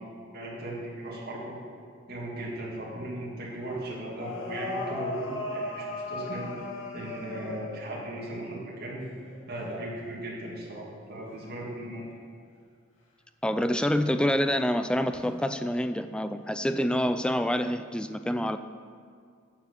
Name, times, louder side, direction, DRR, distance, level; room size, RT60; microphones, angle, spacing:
voice 1, 0.0-1.6 2.1-6.5 6.9-9.0 9.5-12.0, right 1 dB, 50° right, -5 dB, 2.4 m, -37 dB
sound 1, 3.5-3.6 4.1-8.0 9.2-9.6 11.2-11.4 15.2-15.5 16.9-17.0, left 2 dB, 85° left, 2.0 m, -36 dB
voice 2, 13.4-18.6, equal, 5° left, 10 dB, 0.3 m, -27 dB
14.5 x 4.8 x 6.9 m, 2.1 s
head